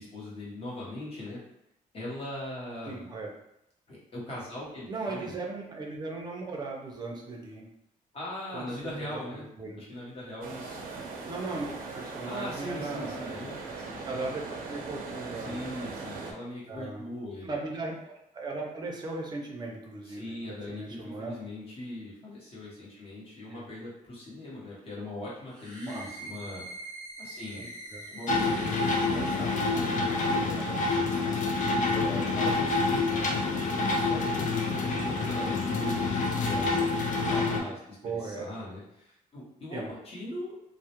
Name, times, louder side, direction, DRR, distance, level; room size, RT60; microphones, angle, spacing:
voice 1, 0.0-1.4 1.9-3.1 3.9-5.3 8.1-9.4 9.8-11.0 12.3-13.5 15.3-17.5 20.0-26.6 27.2-27.6 28.1-31.5 32.2-40.6, left 1 dB, 40° left, -6 dB, 0.9 m, -40 dB
voice 2, 2.9-3.3 4.9-7.7 8.5-8.6 9.1-9.8 11.3-13.4 14.0-15.6 16.7-17.0 17.4-21.4 23.5-23.7 25.9-26.4 27.5-27.6 27.9-28.0 29.1-29.6 31.9-32.3 38.0-38.5 39.7-39.9, right 3 dB, 30° right, 0 dB, 0.5 m, -38 dB
sound 1, 10.4-16.3, right 4 dB, 85° right, 0.4 m, -39 dB
sound 2, 25.5-30.3, right 1 dB, 5° left, 0.7 m, -45 dB
sound 3, 28.3-37.6, left 3 dB, 60° left, 0.4 m, -27 dB
2.2 x 2.0 x 2.8 m, 0.80 s
wide cardioid pair, 165°, 15 cm